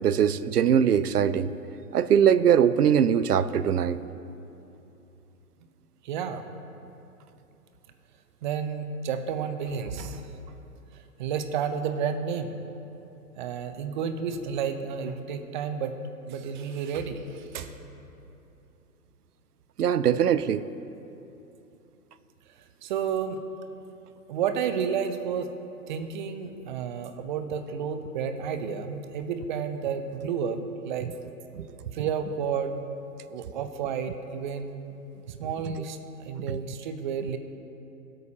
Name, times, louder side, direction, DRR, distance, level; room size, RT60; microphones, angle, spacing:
voice 1, 0.0-1.5 1.9-4.0 19.8-20.6 31.6-31.7 35.7-35.8 36.5-36.6, right 8 dB, 75° right, 15 dB, 0.6 m, -22 dB
voice 2, 6.0-6.4 8.4-10.6 11.2-12.5 13.4-16.0 16.3-17.7 22.8-23.4 24.3-25.5 25.9-31.1 31.9-32.8 33.3-34.7 35.4-37.4, right 7 dB, 30° right, 8 dB, 0.8 m, -31 dB
21.0 x 8.7 x 2.9 m, 2.9 s
figure-of-eight pair, 125°, 46 cm